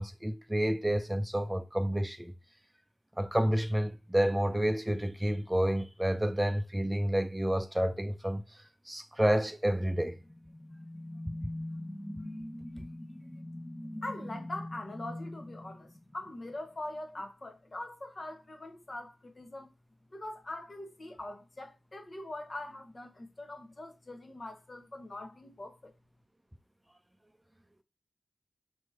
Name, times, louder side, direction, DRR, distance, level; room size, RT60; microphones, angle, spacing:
voice 1, 0.0-2.3 3.2-8.4 8.9-10.2, right 1 dB, 15° right, 0.5 m, -29 dB
sound 1, 10.2-16.6, left 1 dB, 20° left, 0.9 m, -42 dB
voice 2, 14.0-19.7 20.1-25.9, left 1 dB, 50° left, 1.0 m, -42 dB
3.5 x 2.9 x 4.6 m
cardioid pair, 45°, 0 cm